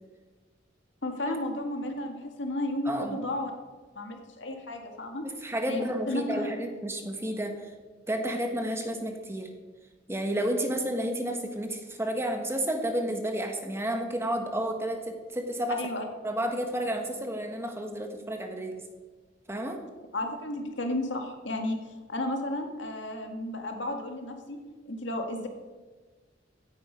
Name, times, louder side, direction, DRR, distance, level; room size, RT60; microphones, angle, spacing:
voice 1, 1.0-3.5 4.0-5.2 5.7-6.5 15.8-16.0 20.1-21.8 22.1-24.6 24.9-25.5, left 1 dB, 80° left, 4 dB, 1.9 m, -33 dB
voice 2, 2.8-3.2 5.2-7.7 8.1-9.5 10.1-15.8 16.2-18.8 19.5-19.8, right 1 dB, 15° right, 4 dB, 1.4 m, -31 dB
15.5 x 8.9 x 5.2 m, 1.4 s
head